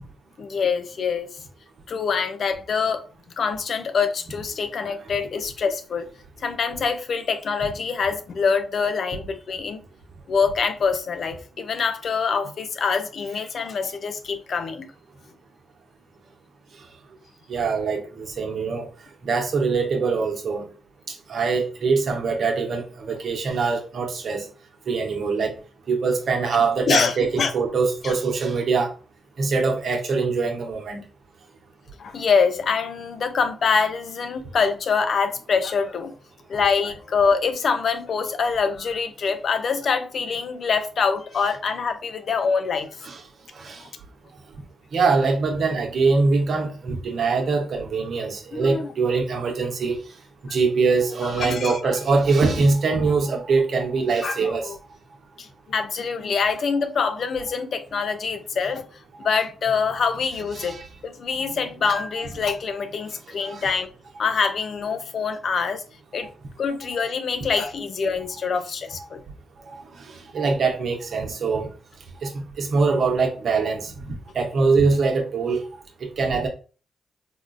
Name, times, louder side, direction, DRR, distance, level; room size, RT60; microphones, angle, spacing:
voice 1, 0.4-1.3 1.9-3.0 3.4-6.1 6.4-9.8 10.3-14.9 26.5-27.5 28.0-28.1 32.0-36.1 36.5-42.9 48.5-48.9 51.2-51.8 54.2-54.8 55.4-58.9 59.2-60.7 61.0-63.9 64.2-65.8 66.1-66.3 66.6-69.2, left 5 dB, 65° left, 0.4 m, -25 dB
voice 2, 17.5-18.9 19.2-20.6 21.3-24.4 24.9-25.5 25.9-28.9 29.4-31.0 43.0-43.2 43.6-43.8 44.9-50.0 50.5-54.7 60.6-60.8 63.4-63.6 70.3-71.7 72.2-72.3 72.6-73.9 74.3-75.6 76.0-76.5, right 4 dB, 65° right, 0.8 m, -23 dB
3.5 x 2.3 x 2.5 m
supercardioid pair, 55°, 0 cm